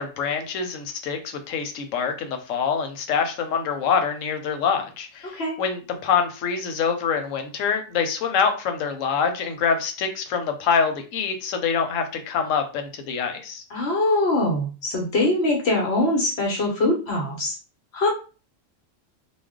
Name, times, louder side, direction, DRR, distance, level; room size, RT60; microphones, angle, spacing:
voice 1, 0.0-13.6, left 6 dB, 90° left, 6 dB, 1.0 m, -25 dB
voice 2, 13.7-17.6 17.9-18.1, left 2 dB, 60° left, 0 dB, 1.0 m, -22 dB
2.4 x 2.1 x 3.5 m, 0.34 s
omnidirectional pair, 1.3 m